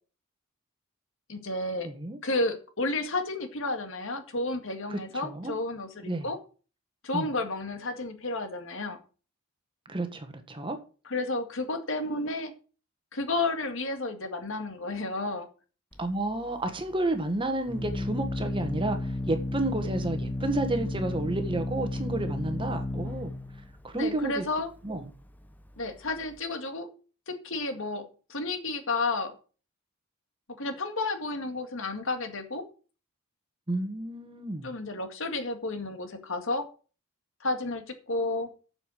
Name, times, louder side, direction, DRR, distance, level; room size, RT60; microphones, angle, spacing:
voice 1, 1.3-1.9 2.2-6.4 7.0-9.0 11.1-12.5 13.1-15.5 23.9-24.7 25.8-26.9 27.3-28.0 28.3-29.3 30.6-32.6 34.6-36.7 37.4-38.5, left 2 dB, 60° left, 1.9 m, -31 dB
voice 2, 1.8-2.2 4.9-5.5 6.0-6.3 7.1-7.3 9.9-10.8 16.0-23.4 23.8-24.4 24.8-25.0 33.7-34.7, right 2 dB, 25° right, 1.4 m, -31 dB
Organ, 15.9-26.4, left 1 dB, 10° left, 0.8 m, -34 dB
7.8 x 7.0 x 7.6 m
head